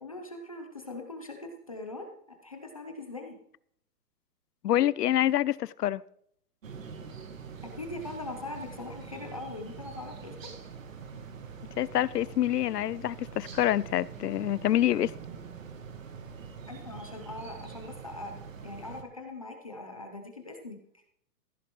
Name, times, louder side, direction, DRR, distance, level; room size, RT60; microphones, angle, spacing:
voice 1, 0.0-3.4 7.8-10.3 16.7-18.3 18.6-20.8, left 2 dB, 25° left, 0.7 m, -41 dB
voice 2, 4.6-6.0 11.8-15.1, left 12 dB, 85° left, 0.6 m, -26 dB
sound 1, 6.6-19.0, right 6 dB, 55° right, 1.4 m, -44 dB
15.0 x 11.5 x 3.0 m
hypercardioid pair, 180°, 47 cm